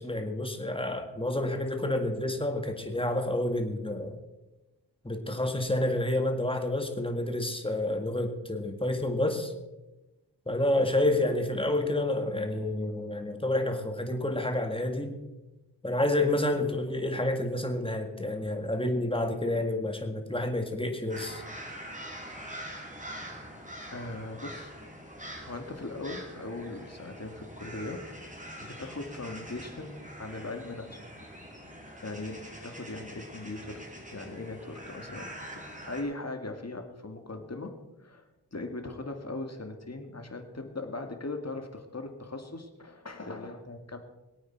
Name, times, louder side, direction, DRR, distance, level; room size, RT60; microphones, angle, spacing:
voice 1, 0.0-4.2 5.0-9.5 10.5-15.2 15.8-21.4, left 1 dB, 15° left, 5 dB, 1.9 m, -29 dB
sound 1, 21.1-36.0, equal, 20° right, 2.9 m, -44 dB
voice 2, 23.9-24.7 25.4-28.0 28.6-31.0 32.0-33.9 34.1-37.7 38.0-38.2 38.5-44.0, left 2 dB, 40° left, 5 dB, 1.9 m, -39 dB
22.0 x 8.7 x 4.6 m, 1.0 s
wide cardioid pair, 65°, 40 cm